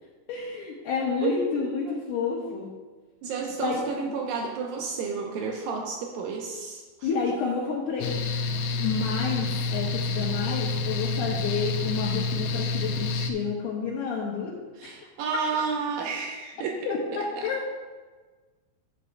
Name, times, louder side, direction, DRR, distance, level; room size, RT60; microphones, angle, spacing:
voice 1, 0.3-2.7 3.6-4.2 7.0-8.2 8.7-14.5 14.8-14.9 16.9-17.6, left 5 dB, 70° left, -6 dB, 2.9 m, -30 dB
voice 2, 1.2-1.9 3.2-7.1 14.8-16.9, right 5 dB, 90° right, 1 dB, 2.0 m, -31 dB
Mechanical fan, 8.0-13.3, left 3 dB, 90° left, 2.9 m, -28 dB
12.0 x 8.3 x 2.3 m, 1.3 s
omnidirectional pair, 5.1 m